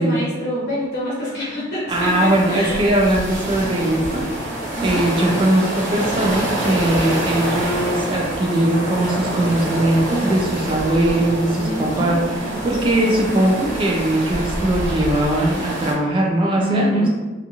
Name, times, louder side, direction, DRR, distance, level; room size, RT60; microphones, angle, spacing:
voice 1, 0.0-2.9 4.7-5.0 11.6-12.6 13.3-13.4 16.6-17.1, equal, 55° left, -8 dB, 0.8 m, -26 dB
voice 2, 1.9-4.3 4.8-17.1, right 1 dB, 25° right, -1 dB, 0.3 m, -20 dB
sound 1, 1.9-15.9, right 1 dB, 40° right, 0.8 m, -26 dB
2.4 x 2.4 x 2.8 m, 1.2 s
head